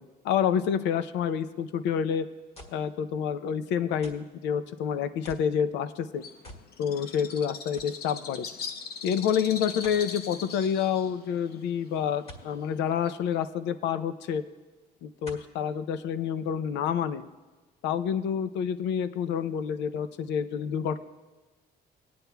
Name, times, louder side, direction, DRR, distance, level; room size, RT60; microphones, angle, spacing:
voice 1, 0.0-2.3 2.7-6.2 6.8-8.5 9.0-14.4 15.0-17.2 17.8-21.0, left 8 dB, 80° left, 12 dB, 0.6 m, -28 dB
sound 1, 2.5-2.9 4.0-4.3 5.2-5.5 6.4-6.7 7.1-7.2 7.8-8.0 9.8-10.1 12.3-12.5 14.0-14.1 15.2-15.6 16.3-16.4, left 1 dB, 35° left, 1.8 m, -47 dB
Bird, 6.2-13.4, left 5 dB, 60° left, 0.8 m, -41 dB
21.0 x 9.4 x 2.3 m, 1.2 s
cardioid pair, 95°, 18 cm